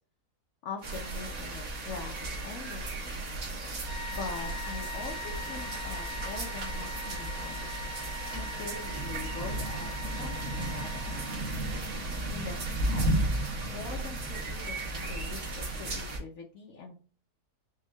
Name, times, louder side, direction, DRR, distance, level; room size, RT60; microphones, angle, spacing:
voice 1, 0.6-2.2 2.4-3.2 4.1-7.7 8.3-10.9 11.2-11.3 12.3-13.1 13.6-16.9, left 4 dB, 65° left, 0 dB, 1.1 m, -43 dB
sound 1, 0.8-16.2, right 2 dB, 60° right, 1.6 m, -34 dB
sound 2, 3.8-11.7, left 1 dB, 45° right, 1.2 m, -42 dB
5.4 x 2.4 x 3.2 m, 0.40 s
omnidirectional pair, 1.7 m